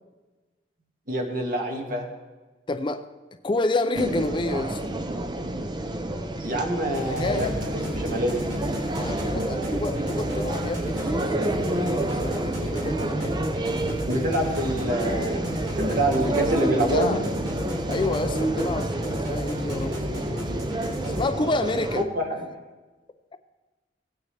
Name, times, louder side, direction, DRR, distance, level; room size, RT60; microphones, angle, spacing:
voice 1, 1.1-2.1 6.4-7.5 8.0-8.4 14.1-17.2 22.2-22.5, right 1 dB, 50° right, 1 dB, 2.0 m, -26 dB
voice 2, 2.7-3.1 3.4-4.8 7.0-7.5 9.0-13.4 16.2-17.2 17.9-20.0 20.3-20.4 21.1-22.0, left 2 dB, 25° left, 9 dB, 0.5 m, -29 dB
sound 1, 3.9-22.0, right 2 dB, 25° right, 0.7 m, -29 dB
sound 2, 6.9-21.3, equal, 75° right, 3.6 m, -34 dB
17.5 x 9.1 x 3.4 m, 1.2 s
head